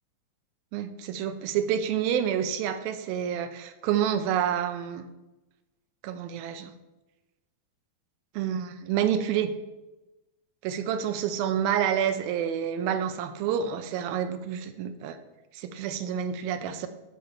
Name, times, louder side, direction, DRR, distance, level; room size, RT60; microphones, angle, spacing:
voice 1, 0.7-5.0 6.0-6.7 8.4-9.5 10.6-15.2 15.5-16.9, right 9 dB, 80° right, 9 dB, 2.4 m, -28 dB
11.0 x 5.4 x 4.4 m, 1.1 s
omnidirectional pair, 4.3 m